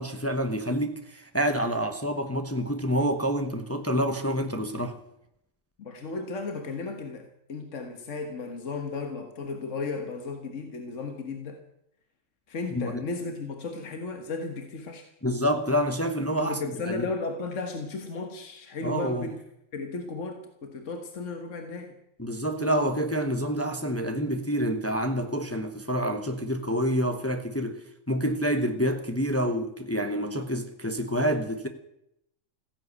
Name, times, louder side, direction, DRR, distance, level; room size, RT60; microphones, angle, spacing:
voice 1, 0.0-5.0 12.7-13.0 15.2-16.6 16.9-17.1 18.8-19.3 22.2-27.8 28.1-31.7, equal, 10° left, 1.0 m, -27 dB
voice 2, 5.8-11.6 12.5-15.0 16.4-19.4 19.7-21.9, left 3 dB, 65° left, 1.7 m, -35 dB
15.5 x 10.5 x 8.1 m
omnidirectional pair, 1.4 m